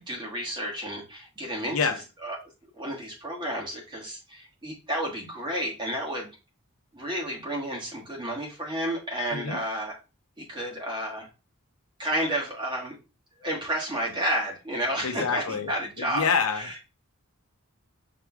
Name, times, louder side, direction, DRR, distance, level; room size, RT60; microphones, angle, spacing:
voice 1, 0.0-2.4 2.7-6.3 6.9-10.0 10.4-11.3 12.0-13.0 13.4-16.9, right 1 dB, 20° right, -3 dB, 1.4 m, -31 dB
voice 2, 15.0-15.7 16.0-16.6, left 5 dB, 75° left, 6 dB, 0.7 m, -26 dB
5.9 x 3.1 x 2.3 m, 0.30 s
head